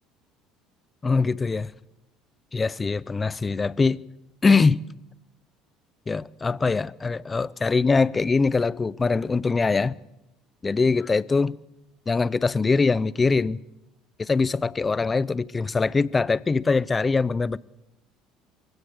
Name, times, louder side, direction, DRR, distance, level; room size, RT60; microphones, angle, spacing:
voice 1, 1.0-1.7 2.5-4.0 4.4-4.8 6.1-10.0 10.6-11.6 12.1-13.6 14.2-17.6, left 4 dB, 25° left, 0.6 m, -22 dB
23.5 x 16.0 x 6.8 m
supercardioid pair, 90°, 0 cm